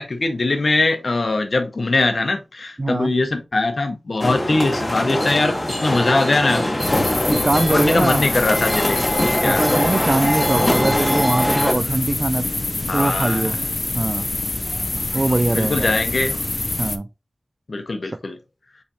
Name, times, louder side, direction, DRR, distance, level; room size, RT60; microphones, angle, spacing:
voice 1, 0.0-6.7 7.3-9.0 9.4-9.6 12.9-13.6 15.5-16.4 17.7-18.4, left 2 dB, 65° left, 0.8 m, -21 dB
voice 2, 2.8-3.1 7.3-8.3 9.4-12.5 12.9-13.6 13.9-14.3 15.1-15.9 16.8-17.1, right 2 dB, 40° right, 0.4 m, -22 dB
sound 1, 4.2-11.7, left 1 dB, 25° left, 1.0 m, -22 dB
sound 2, 6.8-17.0, left 2 dB, 40° left, 0.4 m, -26 dB
5.4 x 3.2 x 2.7 m
wide cardioid pair, 70°, 0 cm